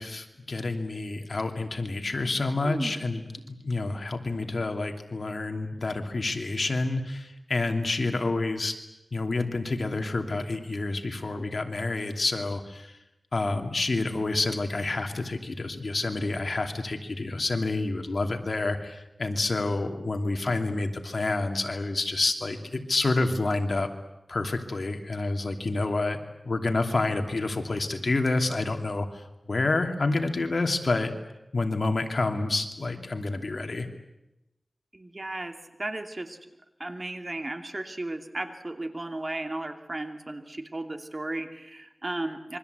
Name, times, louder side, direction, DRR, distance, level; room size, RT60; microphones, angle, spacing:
voice 1, 0.0-8.8 9.1-13.0 13.3-23.9 24.3-26.2 26.4-31.1 31.5-33.9, left 2 dB, 60° left, 5 dB, 2.8 m, -28 dB
voice 2, 2.6-3.0 34.9-36.4 36.8-42.6, right 2 dB, 40° right, 5 dB, 2.6 m, -35 dB
27.0 x 24.0 x 8.2 m, 0.93 s
wide cardioid pair, 80°, 0 cm